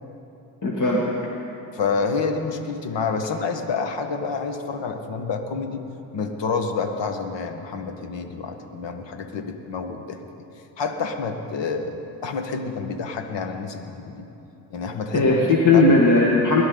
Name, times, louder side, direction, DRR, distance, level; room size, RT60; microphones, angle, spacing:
voice 1, 0.6-1.0 15.1-16.6, left 2 dB, 35° left, -3 dB, 2.1 m, -17 dB
voice 2, 1.7-5.8 6.1-10.2 10.8-12.0 12.2-14.3 14.7-15.3 15.7-15.8, left 5 dB, 60° left, 6 dB, 1.6 m, -28 dB
21.0 x 12.0 x 3.9 m, 2.9 s
supercardioid pair, 65°, 50 cm